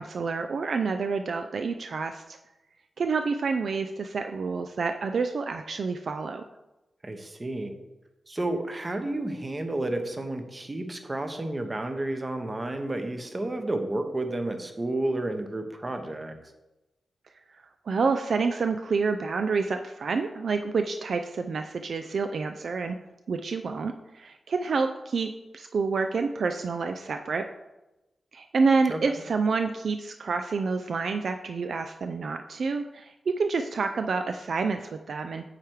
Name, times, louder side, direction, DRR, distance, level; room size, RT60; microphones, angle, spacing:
voice 1, 0.0-2.4 3.0-6.4 17.9-23.0 23.3-27.4 28.3-35.4, right 4 dB, 70° right, 7 dB, 0.3 m, -28 dB
voice 2, 7.0-7.7 8.3-16.4 28.9-29.0, right 2 dB, 30° right, 6 dB, 0.9 m, -31 dB
8.2 x 3.3 x 4.6 m, 1.0 s
cardioid pair, 65°, 0 cm